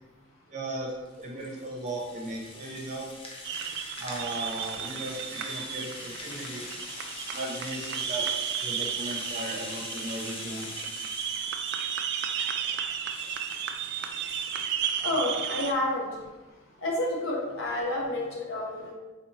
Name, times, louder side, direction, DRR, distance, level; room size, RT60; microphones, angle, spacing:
voice 1, 0.5-0.9 1.2-3.1 4.0-6.7 7.3-8.3 8.6-10.7, right 1 dB, 35° right, -2 dB, 0.8 m, -36 dB
Rattle (instrument), 0.9-15.1, left 2 dB, 30° left, 0.6 m, -43 dB
sound 1, 3.4-15.7, right 8 dB, 55° right, 0.3 m, -34 dB
voice 2, 15.0-16.1 16.8-18.9, left 1 dB, 70° left, -3 dB, 1.1 m, -29 dB
4.2 x 3.3 x 2.9 m, 1.2 s
head